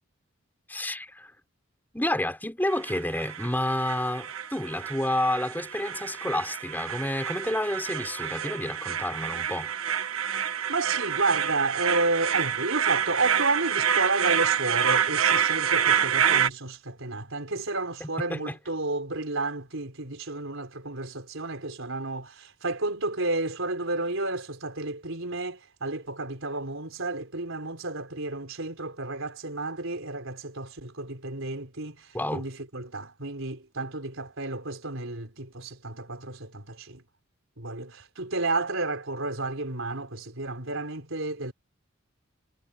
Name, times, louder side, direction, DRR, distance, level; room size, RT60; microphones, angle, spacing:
voice 1, 0.7-1.3 1.9-9.7 18.0-18.6 32.1-32.4, left 1 dB, 10° left, 6.2 m, -30 dB
sound 1, 2.7-16.5, right 8 dB, 85° right, 1.6 m, -27 dB
voice 2, 10.7-37.0 37.6-41.5, right 3 dB, 70° right, 4.1 m, -31 dB
head